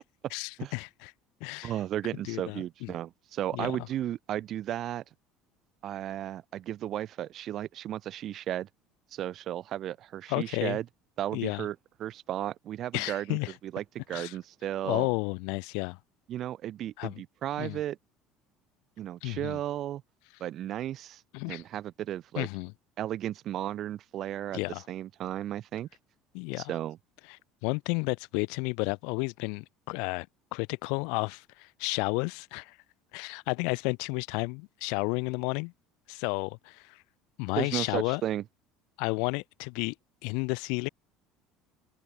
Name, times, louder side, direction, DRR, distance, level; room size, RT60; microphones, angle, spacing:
voice 1, 0.3-1.1 1.4-1.7 2.2-2.9 3.5-3.8 10.3-10.8 11.3-11.7 12.9-13.5 14.1-14.4 14.8-16.0 17.0-17.2 17.6-17.8 19.2-19.6 21.3-21.6 22.4-22.7 24.5-24.8 26.3-26.7 27.3-27.4 27.6-30.3 30.5-32.8 33.1-35.7 36.1-37.0 37.4-38.2 39.0-39.9 40.2-40.9, left 34 dB, 80° left, 3.5 m, -32 dB
voice 2, 1.6-5.0 5.8-8.7 9.1-10.8 11.2-15.1 16.3-18.0 19.0-20.0 20.4-22.5 23.0-24.6 24.9-25.9 26.6-27.0 37.6-38.4, right 12 dB, 50° right, 7.1 m, -34 dB
supercardioid pair, 110°, 0 cm